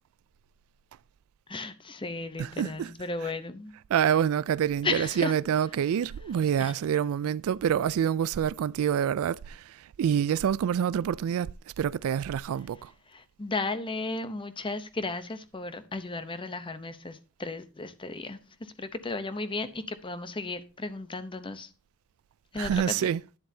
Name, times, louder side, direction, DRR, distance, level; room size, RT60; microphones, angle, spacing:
voice 1, 1.5-3.7 4.8-5.3 6.6-6.7 13.1-18.4 18.8-21.7 22.5-23.0, left 3 dB, 20° left, 0.7 m, -34 dB
voice 2, 2.4-2.9 3.2-3.3 3.9-11.5 11.8-12.9 22.6-23.2, right 9 dB, 65° right, 0.3 m, -27 dB
10.5 x 7.6 x 2.7 m
head